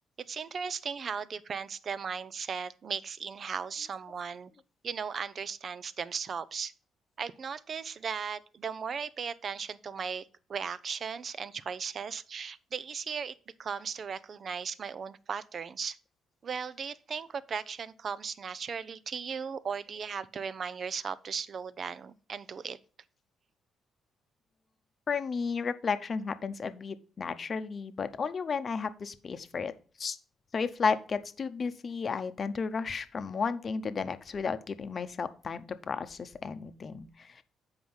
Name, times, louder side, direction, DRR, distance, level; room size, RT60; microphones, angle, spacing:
voice 1, 0.3-4.5 4.8-6.7 7.2-16.0 16.4-22.8, right 6 dB, 50° right, 0.5 m, -37 dB
voice 2, 25.1-29.7 30.0-30.2 30.5-37.4, left 5 dB, 45° left, 0.8 m, -33 dB
7.8 x 4.8 x 5.5 m
cardioid pair, 90°, 0 cm